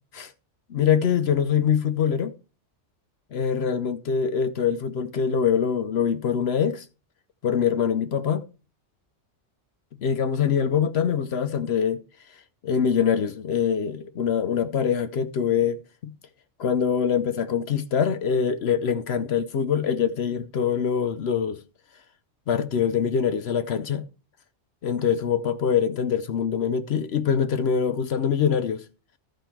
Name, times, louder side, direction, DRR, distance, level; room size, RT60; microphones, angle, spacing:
voice 1, 0.7-2.3 3.3-6.9 7.4-8.5 10.0-12.0 12.6-16.1 16.6-21.6 22.5-24.0 24.8-28.8, left 7 dB, 65° left, 0.9 m, -24 dB
13.5 x 5.1 x 4.5 m
omnidirectional pair, 1.2 m